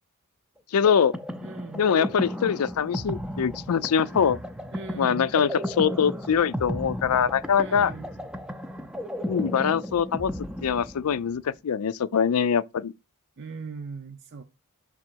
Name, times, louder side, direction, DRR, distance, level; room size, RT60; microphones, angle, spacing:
voice 1, 0.7-1.2 1.8-4.4 5.0-7.9 9.2-10.3 10.6-12.9, left 7 dB, 80° left, 0.4 m, -23 dB
sound 1, 0.8-11.4, equal, 5° right, 0.5 m, -34 dB
voice 2, 1.4-1.9 4.7-5.3 7.6-8.2 13.4-14.4, right 4 dB, 50° right, 0.6 m, -39 dB
6.2 x 3.7 x 4.5 m
head